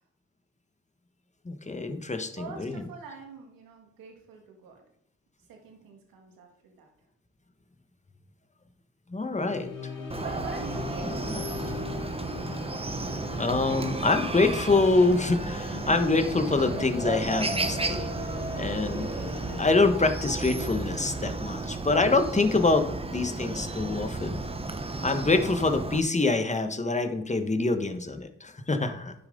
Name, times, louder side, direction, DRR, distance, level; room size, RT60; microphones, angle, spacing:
voice 1, 1.4-2.8 9.1-9.7 13.4-18.1 18.5-19.1 19.6-24.4 25.0-29.1, left 3 dB, 20° left, 7 dB, 1.4 m, -25 dB
voice 2, 2.4-4.8 5.5-6.9 10.2-11.8 28.8-29.1, right 5 dB, 80° right, 3 dB, 2.0 m, -44 dB
sound 1, 9.3-19.6, left 5 dB, 70° left, 2.5 m, -40 dB
Chicken rooster, 10.1-26.0, right 2 dB, 15° right, 1.0 m, -33 dB
9.7 x 7.3 x 3.9 m, 0.71 s
hypercardioid pair, 50°, 34 cm